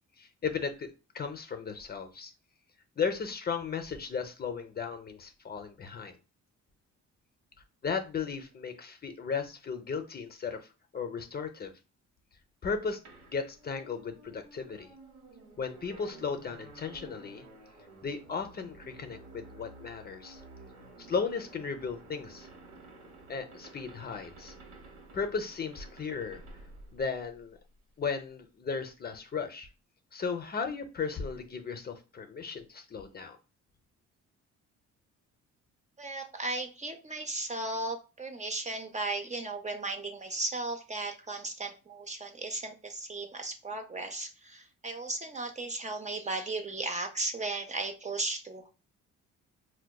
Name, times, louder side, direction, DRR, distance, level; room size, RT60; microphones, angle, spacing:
voice 1, 0.2-0.9 1.1-2.3 3.0-6.2 7.8-10.6 10.9-11.7 12.6-13.0 13.3-14.9 15.6-17.4 18.0-20.4 21.1-22.5 23.3-24.5 25.1-26.4 26.9-27.6 28.0-29.7 30.1-33.4, left 5 dB, 35° left, 7 dB, 0.5 m, -35 dB
sound 1, 13.0-27.8, right 2 dB, 90° right, 1.1 m, -52 dB
voice 2, 36.0-48.7, right 2 dB, 25° right, 4 dB, 0.5 m, -36 dB
4.6 x 2.2 x 2.2 m, 0.32 s
cardioid pair, 90°, 30 cm